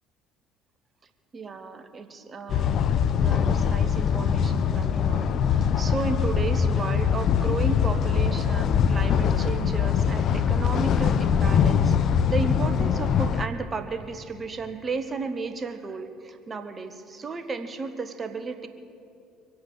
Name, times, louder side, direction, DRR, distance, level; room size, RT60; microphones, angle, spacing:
voice 1, 1.3-2.9 3.1-18.7, right 4 dB, 35° right, 8 dB, 1.4 m, -34 dB
sound 1, 2.5-13.5, left 7 dB, 55° left, 0.6 m, -23 dB
23.5 x 8.7 x 6.9 m, 2.6 s
hypercardioid pair, 60°, 0 cm